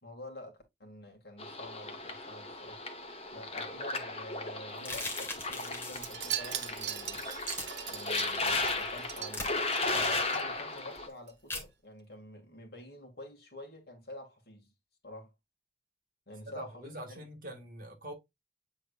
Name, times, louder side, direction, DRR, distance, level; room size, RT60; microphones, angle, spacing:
voice 1, 0.0-2.8 3.3-7.3 7.9-9.5 9.9-14.7 15.0-15.3 16.3-17.2, left 1 dB, 60° left, 2.4 m, -48 dB
sound 1, 1.4-11.1, left 3 dB, 35° left, 1.0 m, -35 dB
sound 2, 4.8-6.1 7.4-7.6 9.3-9.5 11.5-11.7, left 2 dB, 15° left, 1.9 m, -38 dB
Wind chime, 5.9-10.4 10.7-11.0 11.3-11.4, right 10 dB, 80° right, 1.0 m, -40 dB
voice 2, 16.5-18.1, right 1 dB, 50° right, 1.8 m, -44 dB
8.2 x 4.5 x 2.5 m
head